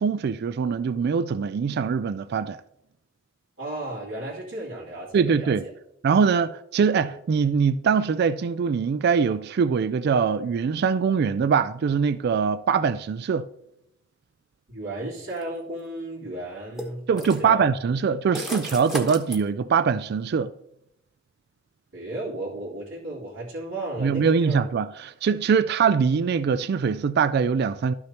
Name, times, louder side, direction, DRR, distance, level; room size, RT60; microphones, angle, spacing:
voice 1, 0.0-2.6 5.1-5.6 6.0-13.5 17.1-20.5 24.0-27.9, right 6 dB, 55° right, 0.3 m, -23 dB
voice 2, 3.6-5.7 14.7-17.6 21.9-24.6, right 1 dB, 90° right, 2.8 m, -34 dB
sound 1, 15.3-15.4 16.8-17.4 18.3-19.4, equal, ahead, 1.1 m, -33 dB
12.5 x 6.3 x 2.9 m
head